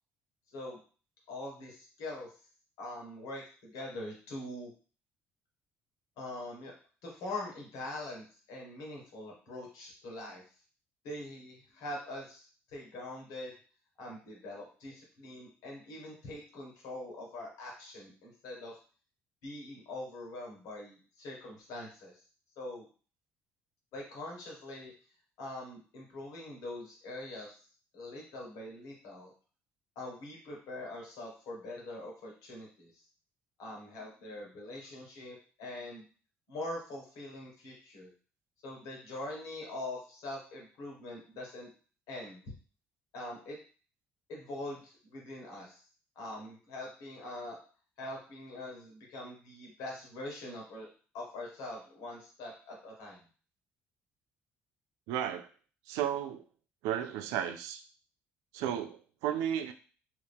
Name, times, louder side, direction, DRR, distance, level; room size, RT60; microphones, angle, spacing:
voice 1, 1.3-2.3 2.8-4.7 6.2-6.7 7.0-10.4 11.0-13.5 14.0-18.7 19.4-22.2 22.6-22.9 23.9-24.9 25.4-27.6 27.9-29.3 29.9-33.0 33.6-36.1 36.5-38.1 38.6-41.7 42.1-42.5 43.1-43.6 44.3-45.8 46.1-47.6 48.0-50.9 51.1-53.2, left 1 dB, 70° left, -2 dB, 1.4 m, -43 dB
voice 2, 55.1-55.5 55.9-56.4 56.8-57.8 58.5-59.7, right 10 dB, 75° right, 9 dB, 0.4 m, -33 dB
2.9 x 2.7 x 3.4 m, 0.39 s
hypercardioid pair, 55°, 6 cm